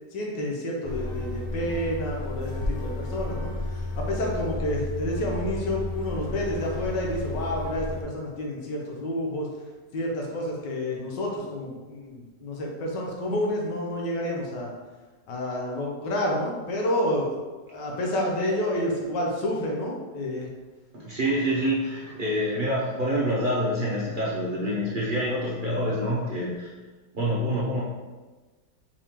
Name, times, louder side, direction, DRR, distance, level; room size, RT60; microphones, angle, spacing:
voice 1, 0.1-3.5 4.0-9.5 9.9-14.7 15.3-17.3 17.7-20.5 21.4-21.5, left 1 dB, 85° left, -1 dB, 1.5 m, -29 dB
sound 1, 0.8-8.0, left 2 dB, 55° left, 0.8 m, -32 dB
voice 2, 20.9-26.7 27.1-27.8, equal, 65° right, -6 dB, 0.5 m, -26 dB
4.8 x 3.6 x 2.9 m, 1.3 s
omnidirectional pair, 1.8 m